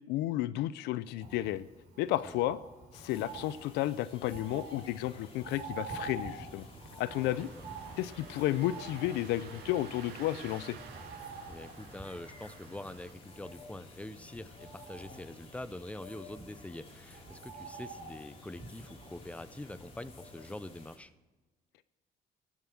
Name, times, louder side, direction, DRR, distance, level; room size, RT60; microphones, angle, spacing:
voice 1, 0.1-1.7 2.0-2.6 2.9-6.7 7.0-7.5 8.0-10.8, left 14 dB, 90° left, 16 dB, 0.5 m, -32 dB
Bird, 1.2-20.3 20.6-20.7, right 4 dB, 50° right, 4.6 m, -48 dB
sound 1, 2.9-21.0, left 2 dB, 35° left, 3.1 m, -53 dB
Engine starting, 7.0-13.1, right 7 dB, 80° right, 1.8 m, -51 dB
voice 2, 11.5-21.1, left 1 dB, 10° left, 15 dB, 0.6 m, -45 dB
15.5 x 7.3 x 7.5 m, 1.2 s
cardioid pair, 110°, 17 cm